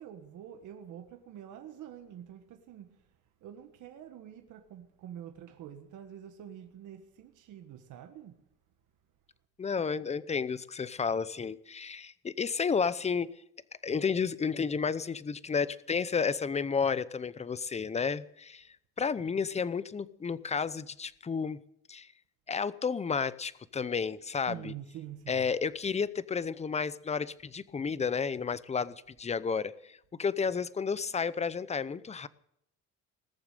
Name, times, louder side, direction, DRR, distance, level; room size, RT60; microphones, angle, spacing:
voice 1, 0.0-3.1 3.4-8.4 24.5-25.4, right 10 dB, 75° right, 1.5 m, -46 dB
voice 2, 9.6-13.3 13.8-18.7 19.0-21.6 21.9-22.1 22.5-24.7 25.3-32.3, left 5 dB, 20° left, 0.7 m, -32 dB
19.5 x 7.1 x 9.2 m
cardioid pair, 110°, 30 cm